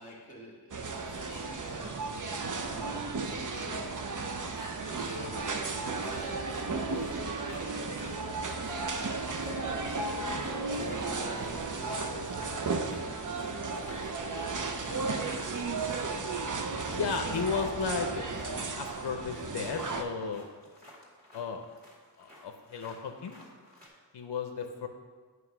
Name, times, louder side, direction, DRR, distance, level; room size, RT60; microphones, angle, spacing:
voice 1, 0.0-4.1 4.8-9.9 10.6-13.5 14.0-15.4, right 1 dB, 20° left, -7 dB, 1.7 m, -48 dB
sound 1, 0.7-20.0, right 4 dB, 45° right, 0.6 m, -34 dB
sound 2, 4.5-23.9, left 1 dB, 20° right, 2.2 m, -54 dB
Piano, 8.7-12.5, left 3 dB, 5° right, 0.5 m, -43 dB
voice 2, 16.9-20.4 21.3-21.6 22.2-23.4 24.1-24.9, left 5 dB, 65° left, 5 dB, 0.6 m, -34 dB
9.3 x 3.1 x 5.9 m, 1.5 s
wide cardioid pair, 80°, 43 cm